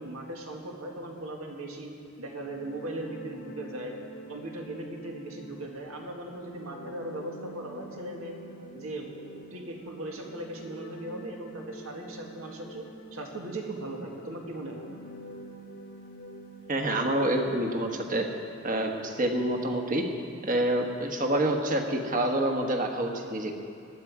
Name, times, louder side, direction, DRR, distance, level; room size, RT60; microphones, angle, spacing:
voice 1, 0.0-1.9 2.2-3.9 4.3-8.3 8.7-9.1 9.5-12.9 13.1-14.9, right 1 dB, 90° right, 1 dB, 2.0 m, -38 dB
sound 1, 2.2-17.9, right 1 dB, 45° left, 1.0 m, -47 dB
voice 2, 16.7-18.3 18.6-20.1 20.4-23.6, right 1 dB, 40° right, 3 dB, 1.3 m, -27 dB
18.5 x 12.0 x 4.9 m, 2.6 s
head